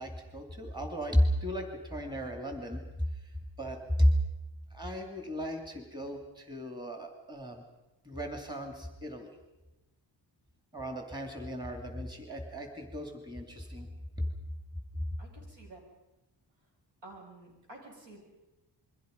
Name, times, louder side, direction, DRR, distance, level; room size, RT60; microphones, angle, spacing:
voice 1, 0.0-2.8 3.6-4.1 4.7-7.6 8.0-9.3 10.7-13.9 14.2-14.3, equal, 10° right, 4 dB, 2.7 m, -33 dB
voice 2, 15.2-15.8 17.0-18.2, right 2 dB, 75° right, 0 dB, 7.1 m, -50 dB
28.0 x 22.5 x 5.3 m, 1.0 s
wide cardioid pair, 175°, 45 cm